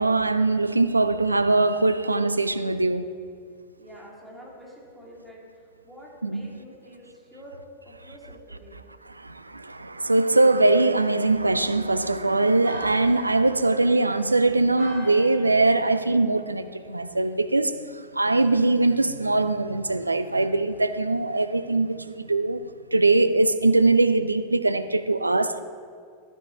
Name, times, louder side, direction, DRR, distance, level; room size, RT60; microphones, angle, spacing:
voice 1, 0.0-3.1 6.2-6.4 9.2-17.8 18.1-22.6 22.9-25.6, right 2 dB, 80° right, 0.4 m, -22 dB
voice 2, 3.8-7.6 7.8-8.8, equal, 5° right, 2.7 m, -47 dB
Church bell, 11.6-17.4, right 1 dB, 60° right, 2.1 m, -45 dB
12.5 x 9.9 x 3.1 m
figure-of-eight pair, 90°, 0 cm